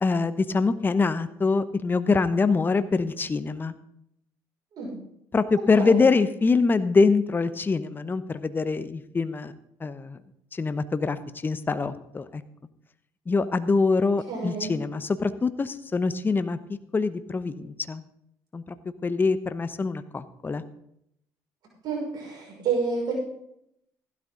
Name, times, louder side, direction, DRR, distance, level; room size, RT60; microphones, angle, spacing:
voice 1, 0.0-3.7 5.3-9.5 9.8-10.2 10.5-12.4 13.3-16.6 16.9-18.0 18.5-18.6 19.0-20.6, left 4 dB, 25° left, 13 dB, 0.9 m, -24 dB
voice 2, 14.3-14.7 21.8-23.1, right 5 dB, 60° right, -2 dB, 6.2 m, -29 dB
15.5 x 12.0 x 3.9 m, 0.75 s
supercardioid pair, 75°, 8 cm